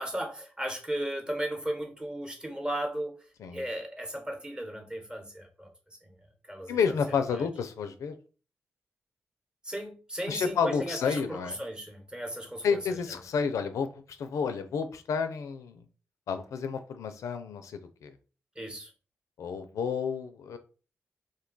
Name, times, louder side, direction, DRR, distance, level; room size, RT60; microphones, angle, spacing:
voice 1, 0.0-3.1 3.5-6.2 6.5-7.5 9.6-12.8 18.5-18.9, right 1 dB, 15° right, 4 dB, 1.0 m, -36 dB
voice 2, 6.7-8.1 10.3-11.6 12.6-15.8 16.3-18.1 19.4-20.6, left 6 dB, 85° left, 9 dB, 0.4 m, -30 dB
2.6 x 2.2 x 3.8 m, 0.36 s
cardioid pair, 65°, 5 cm